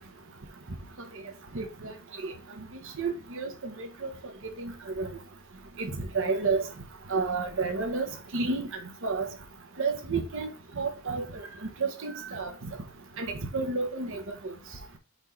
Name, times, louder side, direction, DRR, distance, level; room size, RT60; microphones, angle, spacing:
voice 1, 1.5-1.9 2.2-2.3 3.0-4.1 4.6-4.7 5.0-5.1 5.8-6.6 7.1-8.7 9.0-9.3 9.8-10.5 10.8-11.4 11.8-12.5 13.2-14.2, right 4 dB, 65° right, 1.0 m, -30 dB
4.4 x 4.4 x 5.2 m
head